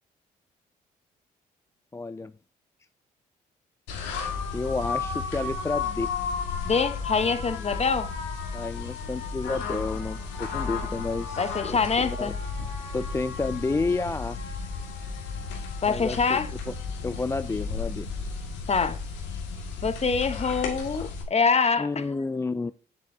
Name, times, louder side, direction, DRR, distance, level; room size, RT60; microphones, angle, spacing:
voice 1, 1.9-2.3 4.5-6.1 8.5-11.8 12.0-12.3 12.9-14.4 15.9-16.4 16.7-16.8 17.0-18.1 21.8-22.7, left 3 dB, 15° left, 0.3 m, -30 dB
sound 1, 3.9-21.2, left 5 dB, 85° left, 2.0 m, -33 dB
voice 2, 6.6-8.1 11.4-12.3 15.8-16.5 18.7-19.0 19.8-22.0, left 5 dB, 35° left, 1.0 m, -25 dB
7.6 x 7.5 x 2.8 m
supercardioid pair, 60°, 19 cm